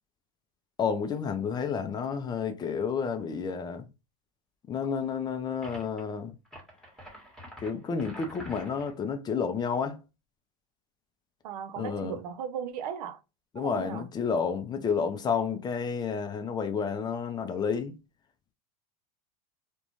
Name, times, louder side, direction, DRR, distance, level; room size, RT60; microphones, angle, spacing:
voice 1, 0.8-3.9 4.7-6.3 7.6-10.0 11.8-12.2 13.6-17.9, left 6 dB, 20° left, 0.4 m, -30 dB
sound 1, 5.6-6.0 6.4-9.0, equal, ahead, 1.0 m, -47 dB
voice 2, 11.4-13.2 13.5-14.1, right 8 dB, 80° right, 0.5 m, -37 dB
2.4 x 2.2 x 2.9 m
supercardioid pair, 115°, 20 cm